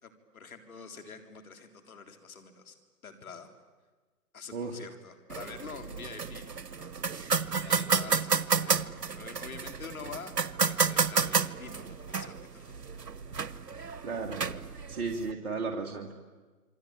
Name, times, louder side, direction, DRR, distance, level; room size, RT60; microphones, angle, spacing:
voice 1, 0.0-2.8 3.0-3.5 4.3-7.0 7.6-8.3 8.6-10.3 10.7-12.9, left 5 dB, 60° left, 6 dB, 3.9 m, -46 dB
sound 1, 5.3-15.3, right 5 dB, 90° right, 1.2 m, -31 dB
voice 2, 14.0-14.4 14.9-16.2, right 4 dB, 40° right, 0 dB, 2.3 m, -34 dB
27.5 x 24.0 x 9.0 m, 1.3 s
figure-of-eight pair, 150°, 47 cm